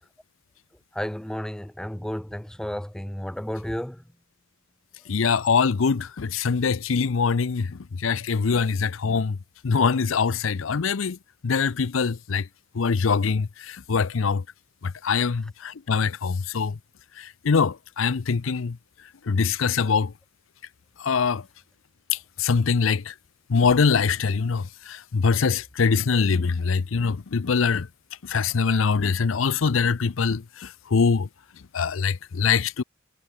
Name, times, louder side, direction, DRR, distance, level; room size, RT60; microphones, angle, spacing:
voice 1, 0.9-4.0, equal, 5° left, 0.4 m, -32 dB
voice 2, 5.1-9.4 9.6-11.2 11.4-12.5 12.7-14.4 14.8-16.8 17.2-18.8 19.3-20.1 21.0-21.4 22.4-23.1 23.5-27.9 28.2-31.3 31.7-32.8, left 5 dB, 75° left, 0.6 m, -23 dB
head